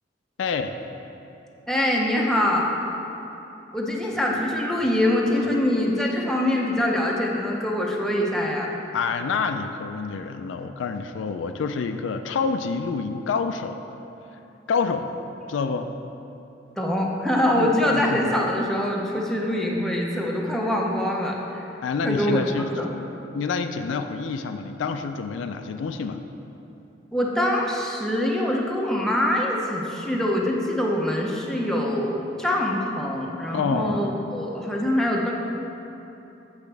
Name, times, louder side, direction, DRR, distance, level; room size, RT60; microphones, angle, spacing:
voice 1, 0.4-0.8 8.9-13.8 14.7-15.1 15.5-15.9 17.5-18.3 21.8-22.7 23.3-26.2 33.5-34.0, left 5 dB, 75° left, 7 dB, 0.3 m, -27 dB
voice 2, 1.7-2.7 3.7-8.7 16.8-21.7 22.0-22.9 27.1-35.3, left 1 dB, 5° left, -2 dB, 0.7 m, -24 dB
8.3 x 5.9 x 3.3 m, 2.9 s
head